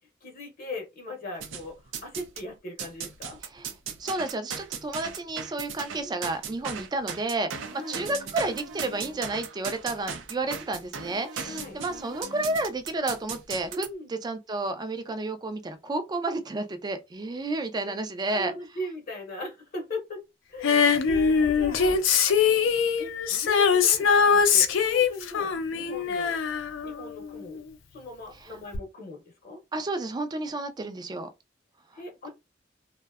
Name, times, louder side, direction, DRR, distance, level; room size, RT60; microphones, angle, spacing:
voice 1, 0.2-3.4 6.0-6.2 7.7-8.0 11.5-11.8 13.7-14.1 18.3-22.0 22.4-22.7 23.0-26.4 26.8-27.6 27.9-29.6 32.0-32.3, left 2 dB, 50° left, 0.7 m, -39 dB
sound 1, 1.4-2.4 2.8-13.9, right 6 dB, 85° right, 0.4 m, -37 dB
voice 2, 4.0-18.5 29.7-31.3, right 2 dB, 20° right, 0.3 m, -31 dB
Female singing, 20.6-27.6 28.7-28.8, left 6 dB, 90° left, 0.4 m, -22 dB
2.6 x 2.1 x 2.3 m
head